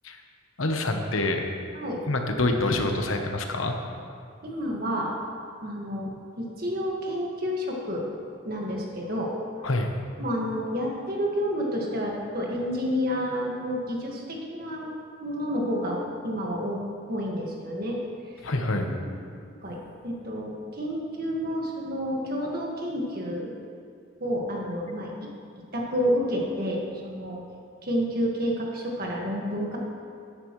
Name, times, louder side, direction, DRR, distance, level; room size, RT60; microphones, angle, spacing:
voice 1, 0.6-1.5 2.1-3.8 9.6-9.9 18.4-18.9, left 2 dB, 85° left, 4 dB, 1.1 m, -26 dB
voice 2, 4.4-5.1 5.6-6.1 6.4-8.0 8.5-9.3 10.2-14.9 15.2-16.8 17.1-18.0 19.0-19.1 19.6-23.5 24.2-25.3 25.7-27.4 27.8-29.8, equal, 45° right, -2 dB, 1.8 m, -29 dB
13.5 x 10.5 x 3.2 m, 2.4 s
head